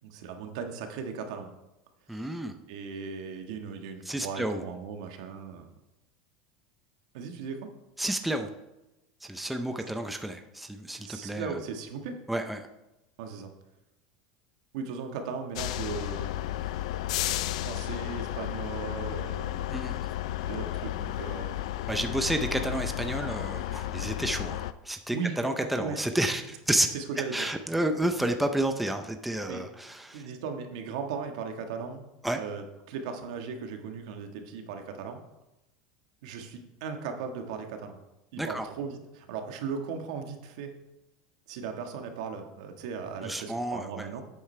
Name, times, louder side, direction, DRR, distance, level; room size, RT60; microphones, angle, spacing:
voice 1, 0.0-1.5 2.1-2.4 2.7-5.7 7.1-7.7 11.0-12.2 13.2-13.5 14.7-16.6 17.5-19.7 20.5-21.6 25.1-26.0 26.9-27.5 29.5-29.6 30.1-32.0 32.3-35.2 36.2-38.0 38.3-40.7 41.5-44.2, right 5 dB, 75° right, 4 dB, 1.5 m, -37 dB
voice 2, 2.1-2.6 4.0-4.6 8.0-8.5 9.2-11.6 12.3-12.7 19.7-20.0 21.9-26.9 27.3-30.2 32.2-32.4 38.4-38.7 43.2-44.1, right 1 dB, 5° right, 6 dB, 0.6 m, -30 dB
sound 1, 15.6-24.7, left 13 dB, 80° left, 0.5 m, -33 dB
10.5 x 8.4 x 3.3 m, 0.94 s
supercardioid pair, 145°, 3 cm